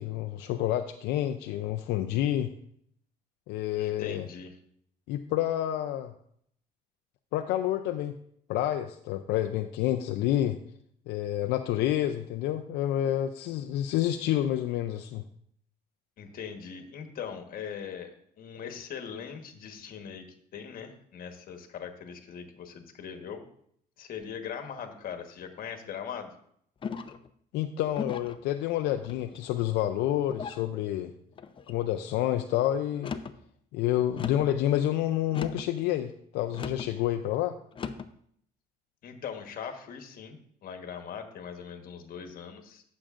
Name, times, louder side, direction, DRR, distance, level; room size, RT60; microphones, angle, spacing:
voice 1, 0.0-2.5 3.5-4.2 5.1-6.1 7.3-8.1 8.5-10.6 11.1-15.2 27.5-31.1 31.7-33.1 33.7-37.5, left 12 dB, 85° left, 7 dB, 0.4 m, -29 dB
voice 2, 3.8-4.5 16.2-18.1 18.4-20.3 20.5-23.4 24.0-26.3 39.0-42.8, left 7 dB, 60° left, 6 dB, 1.3 m, -40 dB
sound 1, 26.8-27.3 27.9-28.4 29.0-29.6 30.3-30.7 31.4-31.8 32.9-33.4 34.2-34.6 35.3-35.7 36.5-36.9 37.7-38.1, left 6 dB, 30° left, 0.5 m, -38 dB
14.0 x 6.4 x 2.5 m, 0.66 s
cardioid pair, 110°, 17 cm